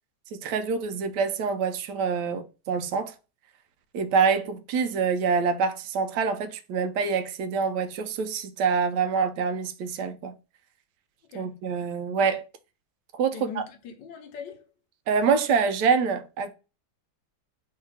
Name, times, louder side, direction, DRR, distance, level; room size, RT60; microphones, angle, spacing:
voice 1, 0.3-3.1 3.9-10.3 11.3-12.4 13.1-13.6 15.1-16.5, right 5 dB, 70° right, 1.1 m, -26 dB
voice 2, 13.3-14.7, left 6 dB, 70° left, 1.3 m, -41 dB
3.3 x 2.8 x 4.6 m
omnidirectional pair, 2.1 m